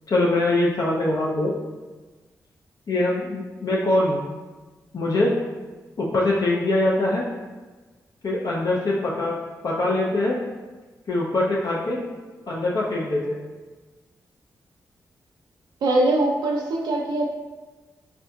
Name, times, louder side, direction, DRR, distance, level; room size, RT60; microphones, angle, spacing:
voice 1, 0.1-1.6 2.9-4.2 4.9-5.3 6.0-7.3 8.2-9.4 9.6-10.4 11.1-12.0 12.5-13.4, left 2 dB, 55° left, -4 dB, 0.4 m, -23 dB
voice 2, 15.8-17.3, right 2 dB, 80° right, -2 dB, 0.4 m, -22 dB
3.5 x 2.5 x 2.2 m, 1.3 s
supercardioid pair, 45°, 7 cm